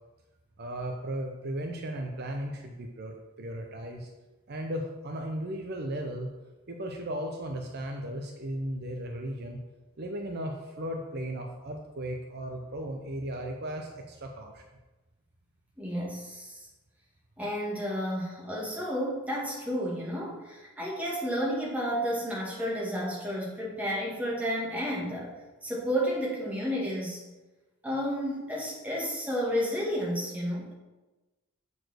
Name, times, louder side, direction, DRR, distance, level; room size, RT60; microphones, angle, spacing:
voice 1, 0.6-4.1 4.5-6.3 6.7-9.6 10.0-14.6, right 1 dB, 50° right, 2 dB, 0.6 m, -36 dB
voice 2, 15.8-16.6 17.4-25.3 25.6-27.2 27.8-30.7, equal, 5° right, -4 dB, 1.7 m, -31 dB
6.8 x 4.2 x 6.4 m, 1.1 s
head